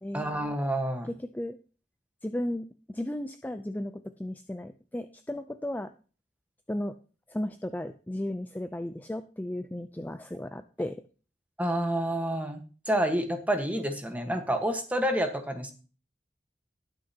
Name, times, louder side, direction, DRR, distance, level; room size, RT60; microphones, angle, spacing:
voice 1, 0.1-1.1 11.6-15.7, right 1 dB, 10° right, 6 dB, 1.3 m, -29 dB
voice 2, 1.0-1.6 2.2-5.9 6.7-7.0 7.3-11.0, left 1 dB, 10° left, 9 dB, 0.4 m, -35 dB
19.0 x 6.5 x 2.8 m, 0.38 s
head